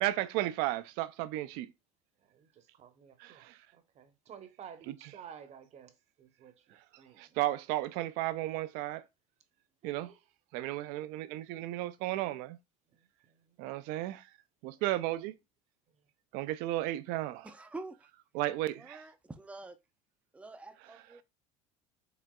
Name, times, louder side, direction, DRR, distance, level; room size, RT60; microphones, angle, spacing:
voice 1, 0.0-1.7 3.2-3.6 4.9-5.1 7.2-9.0 9.8-10.1 10.5-12.6 13.6-14.2 14.6-15.3 16.3-17.5 18.3-19.0, right 15 dB, 65° right, 0.4 m, -34 dB
voice 2, 2.2-3.4 3.7-5.9 6.2-7.4 9.8-10.2 10.6-10.7 11.7-11.8 12.9-13.0 13.3-13.6, right 8 dB, 45° right, 0.8 m, -53 dB
voice 3, 17.4-18.1 18.7-19.8 20.3-21.2, right 2 dB, 10° right, 0.5 m, -46 dB
4.9 x 3.4 x 2.2 m
supercardioid pair, 90°, 16 cm